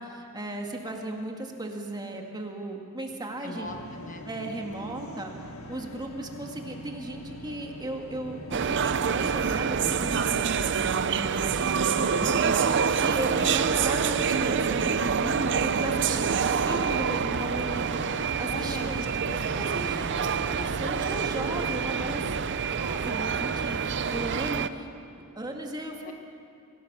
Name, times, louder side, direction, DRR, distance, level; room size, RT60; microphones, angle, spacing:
voice 1, 0.0-3.7 4.2-19.0 19.3-22.4 22.6-24.9 25.4-26.0, right 1 dB, 20° right, 1 dB, 2.0 m, -36 dB
voice 2, 3.4-4.2 11.9-12.3 18.4-19.4 26.0-26.1, left 2 dB, 40° left, 5 dB, 1.3 m, -40 dB
sound 1, 3.6-23.4, equal, 80° left, 1.8 m, -43 dB
sound 2, 8.5-24.7, right 6 dB, 55° right, 0.6 m, -27 dB
25.0 x 16.5 x 6.8 m, 2.6 s
head